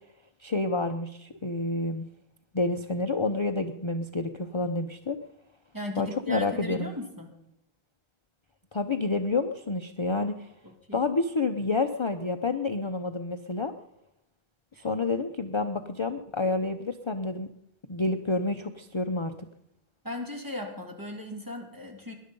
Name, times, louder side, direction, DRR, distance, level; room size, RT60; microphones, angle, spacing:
voice 1, 0.4-2.1 2.5-5.2 6.0-6.9 8.7-10.5 10.9-13.7 14.8-17.5 17.9-19.5, left 3 dB, 30° left, 6 dB, 0.7 m, -29 dB
voice 2, 5.7-7.3 10.9-11.0 14.7-14.8 20.0-22.1, equal, 20° right, 1 dB, 2.6 m, -37 dB
19.5 x 11.0 x 5.4 m, 0.78 s
omnidirectional pair, 1.0 m